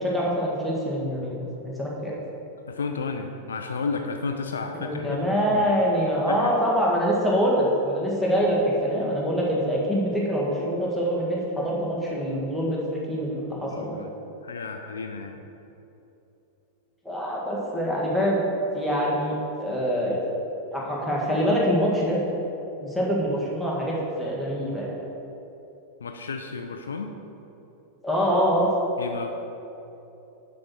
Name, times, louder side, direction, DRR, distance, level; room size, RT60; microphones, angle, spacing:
voice 1, 0.0-2.1 4.7-12.8 13.1-14.0 17.0-18.4 18.7-20.2 20.7-22.2 22.8-24.9 28.0-28.7, equal, ahead, -5 dB, 1.7 m, -25 dB
voice 2, 2.7-5.8 6.3-6.5 13.7-14.1 14.4-15.4 26.0-27.2 29.0-29.3, left 4 dB, 70° left, 5 dB, 0.4 m, -32 dB
7.4 x 6.0 x 4.5 m, 3.0 s
figure-of-eight pair, 90°, 0 cm